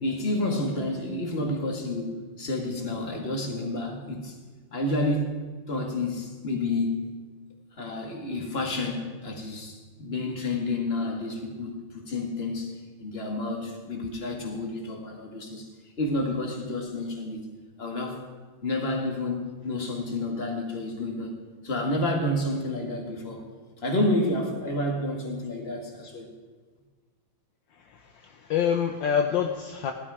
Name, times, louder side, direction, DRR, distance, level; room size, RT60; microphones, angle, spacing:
voice 1, 0.0-4.4 4.7-5.3 5.7-7.1 7.8-12.7 13.0-15.7 16.0-17.5 17.8-18.2 18.6-21.3 21.6-23.4 23.8-26.3, left 2 dB, 30° left, 2 dB, 2.1 m, -30 dB
voice 2, 27.7-29.9, left 8 dB, 70° left, 4 dB, 1.5 m, -27 dB
17.5 x 12.0 x 4.9 m, 1.5 s
omnidirectional pair, 2.2 m